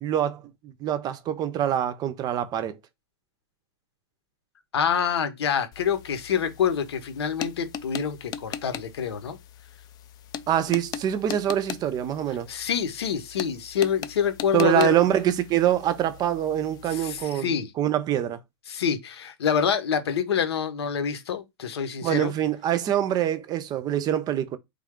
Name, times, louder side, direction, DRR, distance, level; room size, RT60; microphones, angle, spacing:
voice 1, 0.0-2.8 10.5-12.5 14.5-18.4 22.0-24.6, right 11 dB, 30° right, 0.5 m, -25 dB
voice 2, 4.7-9.4 12.5-15.0 16.9-17.7 18.7-22.3, left 7 dB, 80° left, 1.0 m, -26 dB
sound 1, 5.7-17.2, left 9 dB, 30° left, 0.4 m, -40 dB
3.4 x 2.4 x 3.6 m
hypercardioid pair, 120°, 13 cm